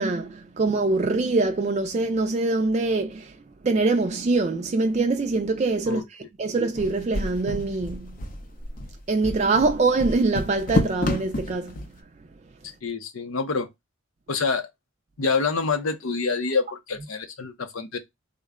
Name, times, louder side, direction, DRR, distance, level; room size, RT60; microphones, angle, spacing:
voice 1, 0.0-3.4 3.6-8.3 9.1-11.9, right 3 dB, 35° right, 0.3 m, -24 dB
sound 1, 6.8-11.9, left 2 dB, 40° left, 0.5 m, -29 dB
voice 2, 12.8-13.7 14.3-14.7 15.2-18.0, left 4 dB, 85° left, 0.7 m, -26 dB
3.8 x 2.1 x 3.5 m
head